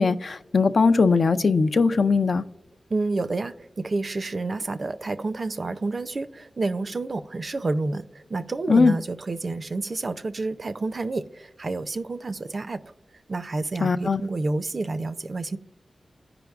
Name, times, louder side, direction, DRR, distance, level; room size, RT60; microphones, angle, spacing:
voice 1, 0.0-2.4 8.7-8.9 13.8-14.2, left 4 dB, 65° left, 0.4 m, -20 dB
voice 2, 2.9-8.1 8.3-12.8 13.3-15.6, right 3 dB, 55° right, 0.4 m, -29 dB
14.5 x 4.9 x 2.3 m
cardioid pair, 55°, 0 cm